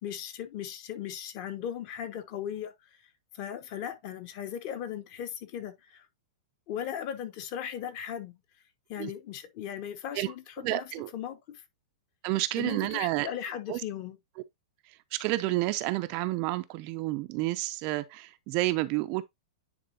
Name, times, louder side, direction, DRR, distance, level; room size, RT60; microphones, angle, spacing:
voice 1, 0.0-2.9 3.3-6.1 6.7-8.4 8.9-11.6 12.6-14.2, left 9 dB, 35° left, 1.0 m, -37 dB
voice 2, 10.6-11.1 12.2-13.3 13.7-13.8 15.1-19.2, right 18 dB, 30° right, 0.4 m, -30 dB
9.4 x 4.2 x 2.7 m
supercardioid pair, 165°, 4 cm